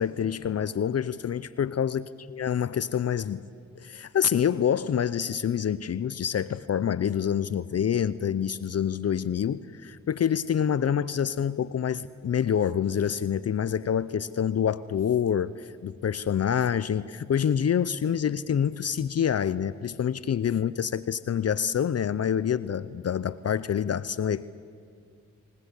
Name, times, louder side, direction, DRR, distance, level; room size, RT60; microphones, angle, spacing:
voice 1, 0.0-3.5 3.8-24.4, left 8 dB, 55° left, 0.6 m, -27 dB
26.0 x 18.5 x 8.2 m
cardioid pair, 55°, 30 cm